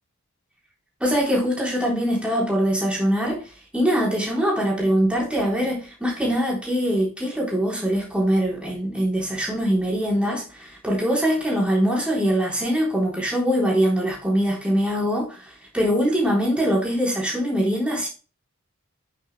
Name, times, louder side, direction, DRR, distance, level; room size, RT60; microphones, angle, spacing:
voice 1, 1.0-3.4 3.7-18.1, equal, 5° right, 3.6 m, -23 dB
9.0 x 7.6 x 2.3 m
head